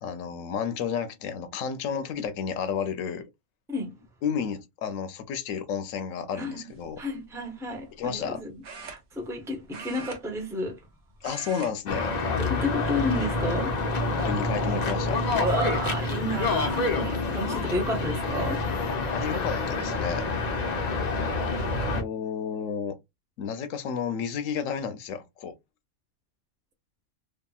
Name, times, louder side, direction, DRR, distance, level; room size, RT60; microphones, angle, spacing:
voice 1, 0.0-3.3 4.2-7.0 8.0-8.4 11.2-12.1 14.3-15.2 19.1-20.3 22.0-23.0 23.4-25.5, left 7 dB, 85° left, 1.0 m, -31 dB
sound 1, 6.7-7.0 8.6-9.4 9.7-10.9 11.2-11.7 12.0-12.3 13.1-13.6 14.2-14.3 15.7-15.8 16.1-16.5, right 4 dB, 60° right, 0.9 m, -43 dB
voice 2, 7.0-8.5 8.8-10.8 12.4-13.8 15.4-18.6, left 1 dB, 5° right, 0.4 m, -31 dB
sound 2, 11.9-22.0, left 3 dB, 50° left, 0.5 m, -27 dB
2.8 x 2.5 x 2.3 m
omnidirectional pair, 1.3 m